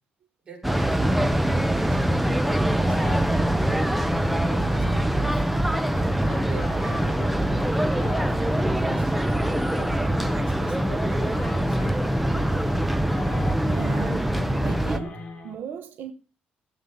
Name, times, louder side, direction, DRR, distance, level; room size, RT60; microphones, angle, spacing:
voice 1, 0.4-1.4 1.7-3.2 4.2-7.3 7.9-12.0 12.3-12.7, right 3 dB, 30° right, 5.0 m, -43 dB
sound 1, 0.6-15.0, right 1 dB, 5° right, 0.7 m, -23 dB
sound 2, 2.8-15.6, left 3 dB, 30° left, 3.0 m, -38 dB
voice 2, 13.6-14.3 14.6-16.1, right 8 dB, 75° right, 1.1 m, -36 dB
14.0 x 8.6 x 5.5 m
cardioid pair, 175°, 3 cm